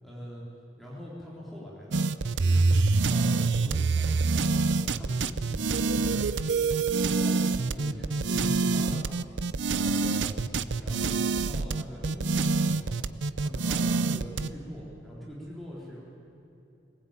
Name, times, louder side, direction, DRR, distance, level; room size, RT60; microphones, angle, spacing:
voice 1, 0.0-0.4 0.8-2.1 2.4-2.7 3.1-6.4 6.9-9.0 9.7-10.4 10.8-13.0 13.4-16.0, equal, ahead, -6 dB, 3.8 m, -42 dB
sound 1, 1.9-14.5, right 3 dB, 80° right, 0.7 m, -26 dB
21.5 x 19.5 x 9.0 m, 2.9 s
head